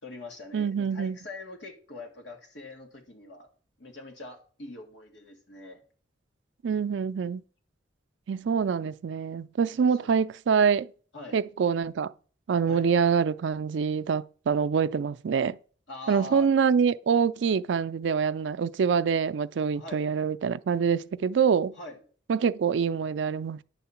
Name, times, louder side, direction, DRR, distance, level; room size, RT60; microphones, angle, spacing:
voice 1, 0.0-3.5 3.8-5.8 9.7-10.2 11.1-11.4 12.7-12.8 15.9-16.5 19.4-20.0 21.7-22.0, left 2 dB, 75° left, 1.9 m, -43 dB
voice 2, 0.5-1.2 6.6-7.4 8.3-10.9 11.3-12.1 12.5-15.6 16.1-21.7 22.3-23.6, right 6 dB, 75° right, 0.4 m, -25 dB
10.5 x 3.7 x 7.0 m
head